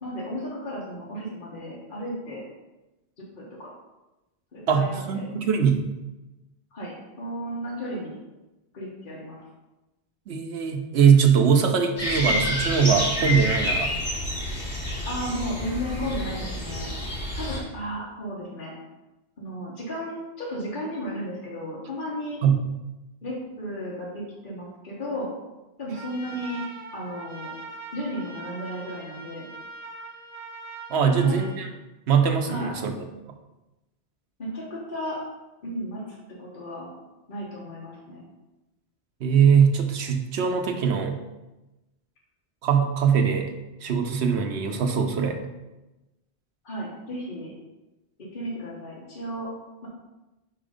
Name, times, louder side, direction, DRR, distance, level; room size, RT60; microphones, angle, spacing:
voice 1, 0.0-2.4 3.2-3.7 4.5-5.3 6.7-8.2 8.7-9.4 15.0-16.9 17.3-18.7 19.4-22.4 23.2-25.3 25.8-26.6 26.9-27.5 27.9-29.5 31.0-31.4 32.4-32.7 34.4-35.2 35.6-36.0 36.4-36.9 37.3-38.2 46.6-47.5 48.2-49.5, equal, 50° left, -5 dB, 1.4 m, -34 dB
voice 2, 4.7-5.9 10.3-13.9 22.4-22.6 30.9-31.7 32.1-33.0 39.2-41.2 42.6-43.5 43.8-45.4, right 7 dB, 85° right, 4 dB, 1.0 m, -21 dB
sound 1, 12.0-17.6, left 1 dB, 85° left, 2.7 m, -28 dB
Trumpet, 25.9-31.6, right 3 dB, 30° right, 0.9 m, -41 dB
5.1 x 4.7 x 5.0 m, 1.0 s
omnidirectional pair, 1.1 m